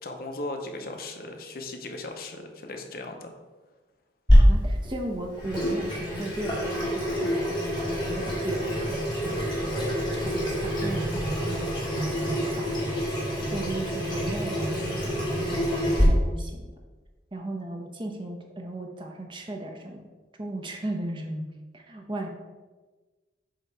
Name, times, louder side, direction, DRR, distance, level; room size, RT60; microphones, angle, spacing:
voice 1, 0.0-3.4, left 2 dB, 55° left, 4 dB, 0.7 m, -37 dB
Water tap faucet / Sink (filling or washing), 4.3-16.0, equal, 25° left, 2.0 m, -25 dB
voice 2, 4.3-9.6 10.1-11.8 12.1-13.1 13.5-16.7 17.3-20.1 20.4-21.4 21.7-22.3, right 1 dB, 25° right, 2 dB, 0.7 m, -36 dB
7.4 x 2.9 x 4.6 m, 1.3 s
head